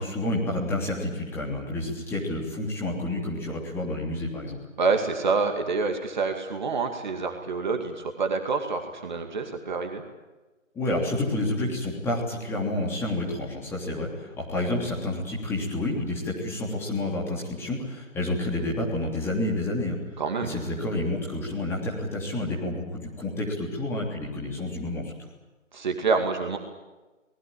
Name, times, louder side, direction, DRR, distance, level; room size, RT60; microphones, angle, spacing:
voice 1, 0.0-4.6 10.7-20.0 20.4-25.1, left 1 dB, 5° left, -3 dB, 3.2 m, -29 dB
voice 2, 4.8-10.0 20.2-20.6 25.7-26.6, right 4 dB, 35° right, 4 dB, 2.3 m, -27 dB
25.0 x 20.0 x 8.9 m, 1.2 s
figure-of-eight pair, 145°, 39 cm